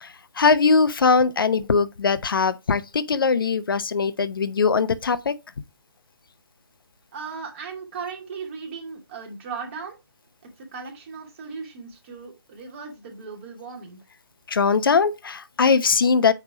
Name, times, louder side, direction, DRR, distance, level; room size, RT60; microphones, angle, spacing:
voice 1, 0.0-5.3 14.5-16.3, left 5 dB, 55° left, 0.8 m, -21 dB
voice 2, 7.1-10.0 10.4-14.0, right 5 dB, 30° right, 2.5 m, -37 dB
9.0 x 3.5 x 4.8 m
figure-of-eight pair, 155°, 14 cm